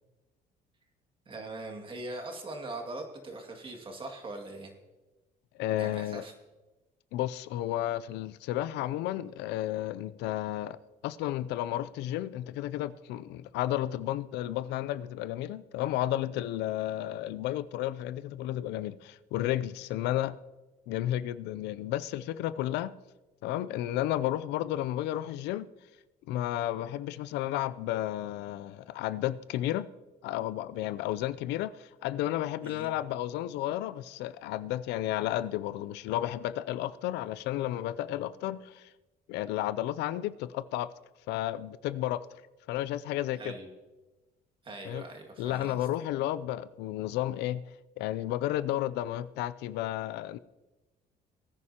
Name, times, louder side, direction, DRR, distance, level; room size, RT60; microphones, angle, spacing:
voice 1, 1.3-4.7 5.8-6.3 32.6-32.9 43.4-43.7 44.6-45.9, right 2 dB, 30° right, 2.2 m, -41 dB
voice 2, 5.6-6.2 7.1-10.8 11.0-20.4 20.9-22.9 23.4-25.7 26.3-29.9 30.2-38.9 39.3-40.9 41.3-42.3 42.7-43.5 44.9-45.1 45.4-47.6 48.0-50.4, left 13 dB, 85° left, 0.5 m, -32 dB
21.0 x 9.7 x 2.9 m
cardioid pair, 110°, 17 cm